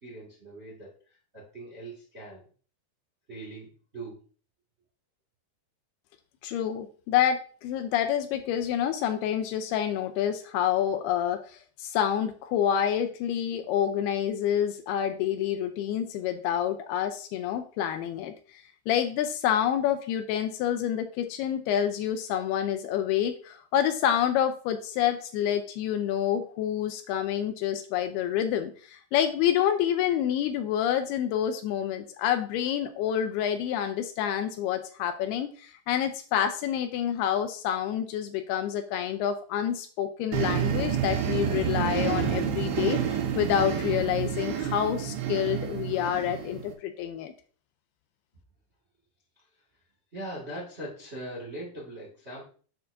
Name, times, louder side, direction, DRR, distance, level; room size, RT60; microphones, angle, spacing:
voice 1, 0.0-0.9 1.3-2.4 3.3-4.2 50.1-52.4, right 1 dB, 35° right, -4 dB, 1.0 m, -40 dB
voice 2, 6.4-47.3, left 10 dB, 80° left, 8 dB, 2.4 m, -28 dB
sound 1, 40.3-46.7, right 8 dB, 90° right, 3.4 m, -29 dB
7.7 x 6.6 x 2.6 m, 0.42 s
omnidirectional pair, 4.8 m